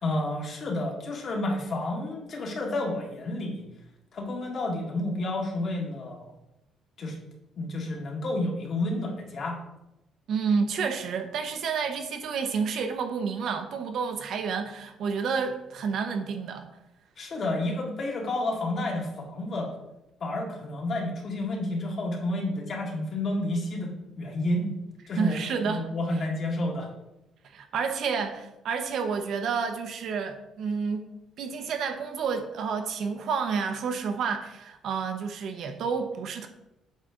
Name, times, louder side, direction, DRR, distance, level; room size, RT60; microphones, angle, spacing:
voice 1, 0.0-3.7 4.1-6.3 7.0-7.2 7.6-9.6 17.2-19.7 20.2-24.7 25.1-25.4 25.7-26.9, left 1 dB, 45° left, 0 dB, 1.8 m, -30 dB
voice 2, 10.3-16.7 25.2-25.9 27.5-31.0 31.4-36.5, right 5 dB, 60° right, 5 dB, 0.8 m, -30 dB
8.2 x 5.5 x 3.8 m, 0.90 s
cardioid pair, 150°, 0 cm